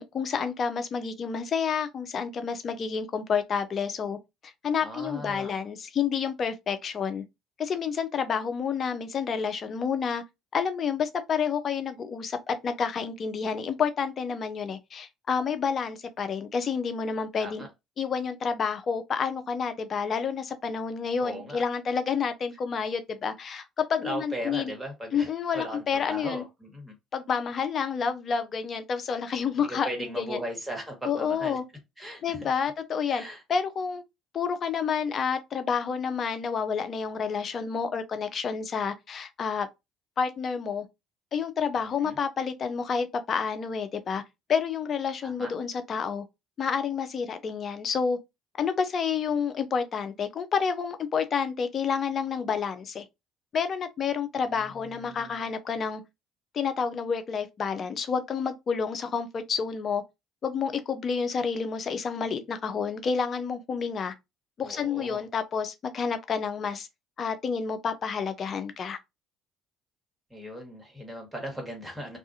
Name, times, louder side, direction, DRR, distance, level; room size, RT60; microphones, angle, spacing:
voice 1, 0.0-4.2 4.4-7.2 7.6-10.2 10.5-17.6 18.0-24.7 25.1-26.4 27.1-30.4 31.0-31.6 32.2-33.2 33.5-34.0 34.3-39.7 40.2-40.9 41.3-44.2 44.5-46.2 46.6-48.2 48.6-53.1 53.5-56.0 56.5-60.0 60.4-64.1 64.6-66.9 67.2-69.0, left 6 dB, 45° left, 0.5 m, -29 dB
voice 2, 4.8-5.6 17.4-17.7 21.2-21.6 24.0-26.9 29.6-31.6 32.0-32.5 33.1-33.4 41.8-42.2 45.2-45.5 54.4-55.5 64.6-65.3 70.3-72.2, right 1 dB, 10° right, 1.5 m, -38 dB
2.4 x 2.4 x 2.6 m
hypercardioid pair, 65°, 0 cm